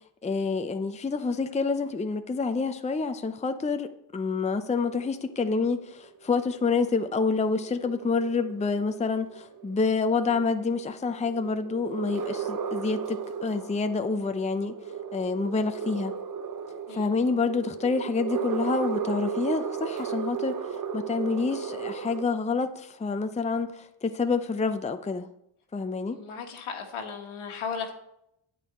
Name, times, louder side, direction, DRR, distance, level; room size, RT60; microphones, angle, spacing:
voice 1, 0.2-14.7 15.1-16.2 16.9-20.6 20.9-23.7 24.0-25.3 25.7-26.2, left 4 dB, 15° left, 8 dB, 0.6 m, -28 dB
sound 1, 4.9-22.2, right 7 dB, 40° right, 0.8 m, -36 dB
voice 2, 26.1-27.9, left 6 dB, 80° left, 3 dB, 1.8 m, -36 dB
9.1 x 8.5 x 4.2 m, 0.77 s
cardioid pair, 80°, 49 cm